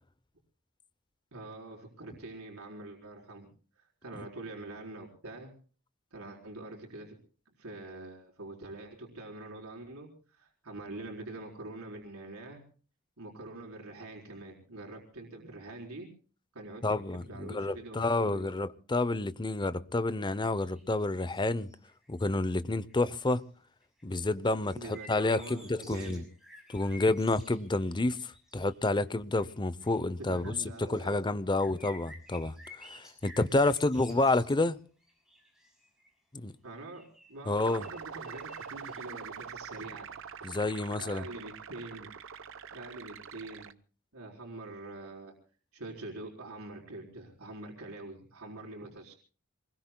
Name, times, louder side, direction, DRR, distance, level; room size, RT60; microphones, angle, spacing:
voice 1, 1.3-3.5 3.8-5.5 6.1-7.2 7.6-12.6 13.2-16.1 16.5-18.5 24.8-26.2 30.2-31.2 36.6-40.1 40.9-42.1 42.7-43.8 44.1-45.3 45.7-49.1, right 2 dB, 85° right, 4.2 m, -45 dB
voice 2, 16.8-21.7 22.1-23.4 24.0-26.2 26.7-30.5 30.8-34.8 36.3-36.5 37.5-37.9 40.4-41.3, left 2 dB, 20° left, 0.6 m, -29 dB
sound 1, 20.5-22.2 22.7-23.4 23.8-29.0 29.4-29.6 29.8-31.2 31.6-34.7 35.0-36.1 36.9-39.0, left 1 dB, ahead, 6.4 m, -53 dB
sound 2, 37.6-43.7, right 7 dB, 65° right, 0.8 m, -44 dB
27.0 x 20.5 x 2.2 m
head